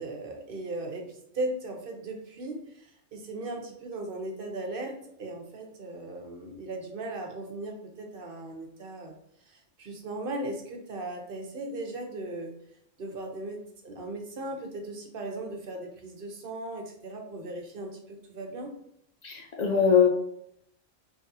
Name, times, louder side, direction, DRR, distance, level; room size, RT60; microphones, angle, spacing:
voice 1, 0.0-9.1 9.4-12.5 13.0-18.7, right 2 dB, 55° right, 2 dB, 0.8 m, -37 dB
voice 2, 19.2-20.1, left 7 dB, 65° left, 2 dB, 0.4 m, -22 dB
3.8 x 3.3 x 2.6 m, 0.74 s
omnidirectional pair, 1.3 m